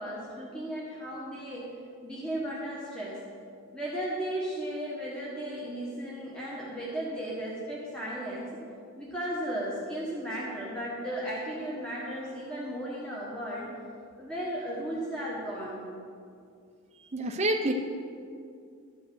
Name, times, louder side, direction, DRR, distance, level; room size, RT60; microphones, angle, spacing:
voice 1, 0.0-1.7 2.0-3.2 3.7-8.5 9.0-13.7 14.2-15.9, right 1 dB, 5° left, -7 dB, 1.3 m, -35 dB
voice 2, 17.1-17.7, right 1 dB, 30° right, 2 dB, 0.6 m, -27 dB
12.5 x 5.3 x 6.9 m, 2.4 s
head